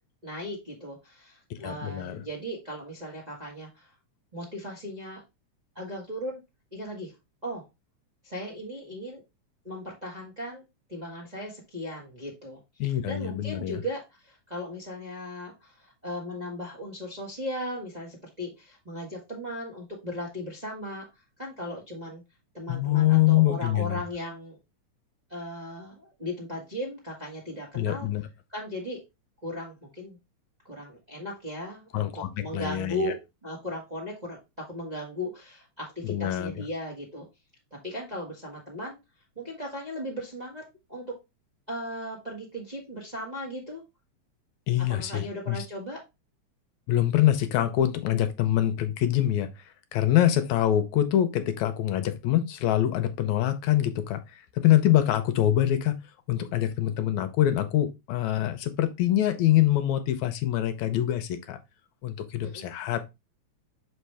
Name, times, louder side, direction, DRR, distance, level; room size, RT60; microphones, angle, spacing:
voice 1, 0.2-3.9 4.3-5.2 5.7-6.4 6.7-7.1 7.4-7.6 8.2-9.2 9.6-10.6 10.9-12.6 13.1-22.2 22.5-24.6 25.3-28.1 28.5-29.0 29.4-30.2 30.6-37.2 37.8-39.0 39.3-40.6 40.9-41.1 41.7-43.8 44.9-46.0 62.4-62.7, equal, 20° right, 1.3 m, -37 dB
voice 2, 1.6-2.2 12.8-13.8 22.7-24.0 27.8-28.2 31.9-33.1 36.0-36.5 44.7-45.6 46.9-54.2 54.6-56.0 56.3-61.6 62.0-63.0, left 12 dB, 80° left, 2.0 m, -25 dB
6.5 x 4.7 x 3.4 m
omnidirectional pair, 3.3 m